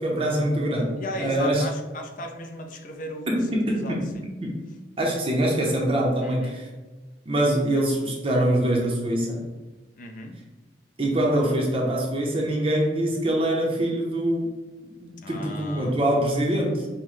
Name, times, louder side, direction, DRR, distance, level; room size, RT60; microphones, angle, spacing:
voice 1, 0.0-1.7 3.3-4.1 4.4-4.6 5.0-6.7 7.3-9.4 11.0-14.5 15.0-16.9, right 1 dB, 30° right, -2 dB, 0.6 m, -24 dB
voice 2, 1.0-3.3 3.6-4.0 6.2-6.6 10.0-10.4 15.2-16.0, left 1 dB, 50° left, 4 dB, 0.5 m, -36 dB
5.5 x 2.1 x 3.1 m, 1.2 s
head